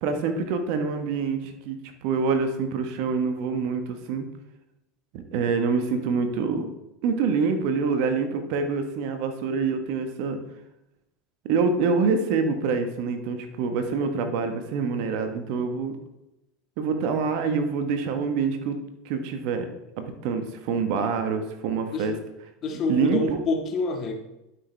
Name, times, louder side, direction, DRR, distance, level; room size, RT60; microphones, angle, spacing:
voice 1, 0.0-1.8 2.0-4.3 5.1-6.7 7.0-10.4 11.4-15.9 16.8-18.8 19.0-19.7 20.0-22.1 22.9-23.4, right 5 dB, 55° right, 7 dB, 1.3 m, -26 dB
voice 2, 22.6-24.1, left 3 dB, 40° left, 2 dB, 1.8 m, -27 dB
11.5 x 6.2 x 3.4 m, 0.90 s
hypercardioid pair, 80°, 0 cm